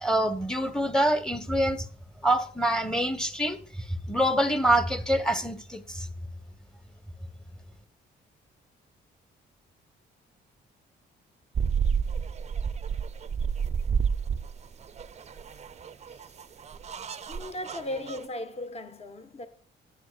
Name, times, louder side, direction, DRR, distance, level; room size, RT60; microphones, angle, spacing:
voice 1, 0.0-1.8 2.2-3.6 4.1-6.1, right 1 dB, 5° left, 1.2 m, -25 dB
sound 1, 11.5-18.2, right 6 dB, 35° right, 0.6 m, -30 dB
voice 2, 17.3-19.5, left 1 dB, 30° left, 1.3 m, -37 dB
12.0 x 9.4 x 2.4 m
cardioid pair, 90°, 20 cm